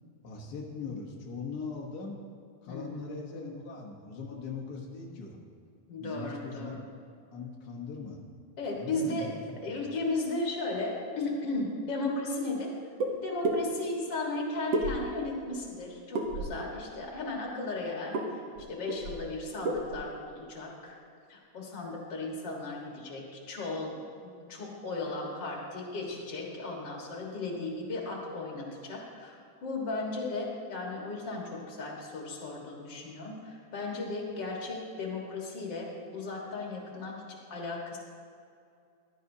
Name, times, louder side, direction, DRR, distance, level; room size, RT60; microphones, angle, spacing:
voice 1, 0.2-2.2 2.6-5.4 6.0-6.8 7.3-8.2 8.7-9.8, left 4 dB, 85° left, -1 dB, 0.8 m, -40 dB
voice 2, 2.7-3.1 3.3-3.7 5.9-6.8 8.6-9.3 9.6-12.7 13.2-18.4 18.7-20.1 20.4-21.0 21.3-23.9 24.2-38.0, left 2 dB, 45° left, -1 dB, 1.8 m, -36 dB
sound 1, 13.0-13.1 13.4-13.6 14.7-15.3 16.1-16.6 18.1-18.3 18.6-18.7 18.9-19.3 19.6-20.0, right 2 dB, 75° right, 1.0 m, -30 dB
14.5 x 11.5 x 2.8 m, 2.4 s
omnidirectional pair, 3.6 m